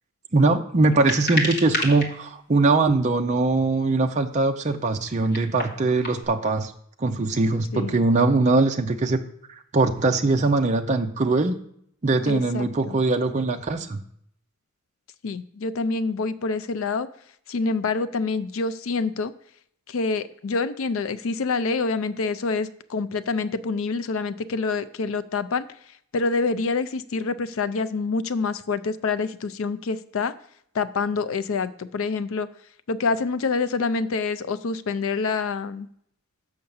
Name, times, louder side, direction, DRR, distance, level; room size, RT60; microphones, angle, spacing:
voice 1, 0.3-6.7 7.0-9.2 9.7-11.6 12.0-14.0, right 3 dB, 30° right, 4 dB, 0.5 m, -21 dB
sound 1, 0.9-2.1 3.0-3.1 5.0-6.3, left 1 dB, 45° left, 1.6 m, -29 dB
voice 2, 12.3-13.0 15.2-17.1 17.5-19.3 19.9-25.7 26.1-30.3 30.7-32.5 32.9-35.9, left 4 dB, 65° left, 14 dB, 0.4 m, -26 dB
6.6 x 5.7 x 7.0 m, 0.68 s
head